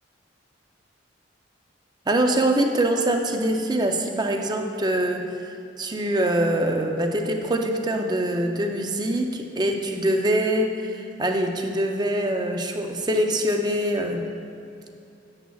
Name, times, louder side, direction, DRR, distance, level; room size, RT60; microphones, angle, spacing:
voice 1, 2.1-5.3 5.8-14.3, right 1 dB, 20° right, 4 dB, 0.5 m, -24 dB
10.5 x 8.1 x 2.3 m, 2.7 s
head